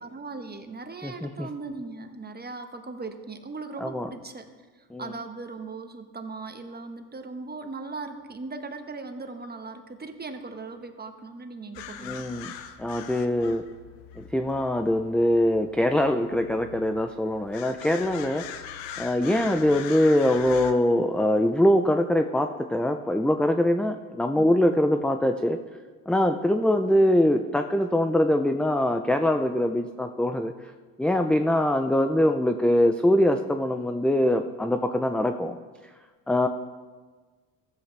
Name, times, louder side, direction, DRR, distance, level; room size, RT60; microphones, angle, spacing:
voice 1, 0.0-12.2 24.3-24.5 32.0-32.4, right 3 dB, 25° right, 6 dB, 1.2 m, -39 dB
voice 2, 1.0-1.5 3.8-4.1 4.9-5.1 12.0-12.5 12.8-13.6 14.2-18.4 19.0-25.6 26.1-30.5 31.0-35.6 36.3-36.5, left 1 dB, ahead, 7 dB, 0.4 m, -23 dB
sound 1, 11.7-20.7, left 9 dB, 85° left, 0.8 m, -42 dB
15.0 x 7.9 x 3.3 m, 1.4 s
supercardioid pair, 70°, 42 cm